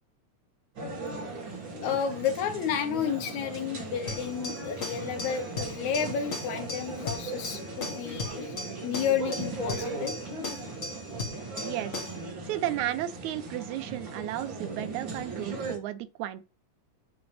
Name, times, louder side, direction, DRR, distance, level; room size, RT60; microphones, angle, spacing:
sound 1, 0.8-15.8, right 3 dB, 45° right, 2.2 m, -38 dB
voice 1, 1.8-10.2, left 8 dB, 75° left, 2.3 m, -31 dB
sound 2, 4.1-12.3, left 2 dB, 35° left, 1.3 m, -38 dB
voice 2, 11.6-12.0 12.4-16.4, right 13 dB, 80° right, 1.9 m, -33 dB
10.5 x 5.0 x 3.2 m
omnidirectional pair, 3.5 m